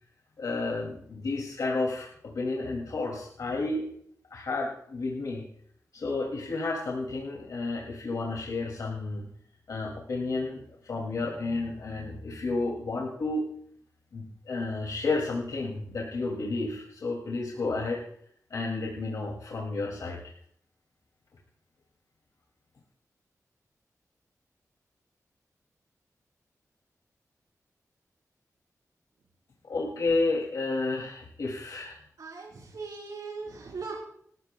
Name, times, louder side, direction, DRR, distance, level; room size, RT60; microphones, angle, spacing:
voice 1, 0.4-3.9 4.3-5.4 5.9-9.3 9.7-13.5 14.1-18.0 18.5-20.3 29.6-32.0, left 3 dB, 80° left, -1 dB, 2.4 m, -31 dB
voice 2, 32.2-34.0, right 4 dB, 85° right, -4 dB, 3.7 m, -39 dB
27.5 x 14.0 x 2.2 m, 0.65 s
wide cardioid pair, 135°, 6 cm